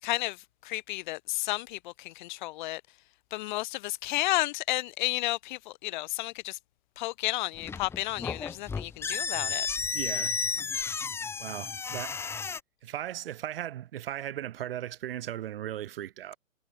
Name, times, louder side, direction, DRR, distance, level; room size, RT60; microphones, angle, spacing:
voice 1, 0.0-2.8 3.3-6.6 7.0-9.7, left 19 dB, 35° left, 5.6 m, -32 dB
sound 1, 7.5-12.6, left 5 dB, 5° left, 1.5 m, -33 dB
voice 2, 9.9-10.3 11.4-12.2 12.8-16.4, right 12 dB, 45° right, 2.4 m, -37 dB
hypercardioid pair, 140°, 42 cm